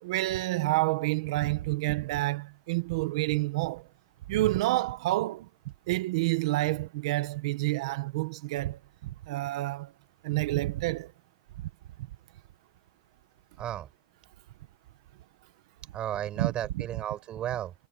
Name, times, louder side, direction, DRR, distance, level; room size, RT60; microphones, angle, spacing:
voice 1, 0.0-3.8 4.3-5.5 5.9-9.9 10.2-11.1 16.4-16.8, right 18 dB, 75° right, 1.5 m, -29 dB
voice 2, 13.6-13.9 15.9-17.7, right 11 dB, 30° right, 5.4 m, -33 dB
supercardioid pair, 155°, 3 cm